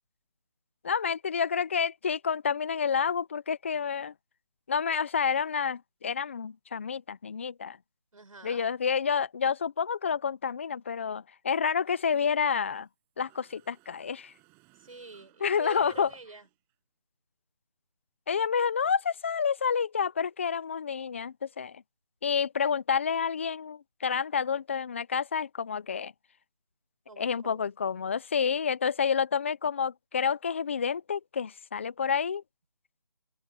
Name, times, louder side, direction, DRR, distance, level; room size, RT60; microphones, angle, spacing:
voice 1, 0.8-4.1 4.7-7.8 8.4-12.9 13.2-14.3 15.4-16.1 18.3-21.8 22.2-26.1 27.2-32.4, left 6 dB, 20° left, 0.8 m, -29 dB
voice 2, 8.1-8.7 14.7-16.5 27.1-27.7, right 3 dB, 60° right, 5.0 m, -47 dB
Mechanisms, 11.9-12.9 13.2-16.7, right 29 dB, 10° right, 7.1 m, -63 dB
figure-of-eight pair, 165°, 20 cm